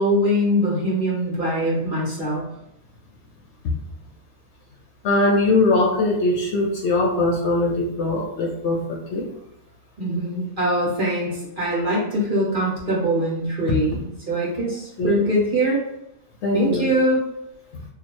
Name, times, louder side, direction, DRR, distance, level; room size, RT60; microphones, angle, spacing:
voice 1, 0.0-2.4 10.0-15.8 16.5-17.2, equal, 40° right, -5 dB, 1.2 m, -22 dB
voice 2, 5.0-9.3 13.7-13.8 15.0-15.2 16.4-16.9, left 2 dB, 65° left, 0 dB, 0.9 m, -21 dB
3.0 x 2.5 x 4.2 m, 0.80 s
omnidirectional pair, 1.4 m